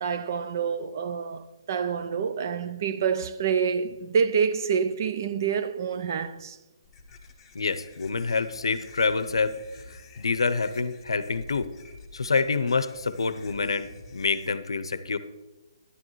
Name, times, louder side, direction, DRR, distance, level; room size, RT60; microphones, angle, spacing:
voice 1, 0.0-6.6, right 6 dB, 40° right, 0.5 m, -27 dB
sound 1, 6.8-14.5, left 4 dB, 10° left, 1.0 m, -49 dB
voice 2, 7.5-9.6 9.9-11.7 12.1-15.2, left 4 dB, 90° left, 0.6 m, -27 dB
10.5 x 9.8 x 3.1 m
hypercardioid pair, 160°, 3 cm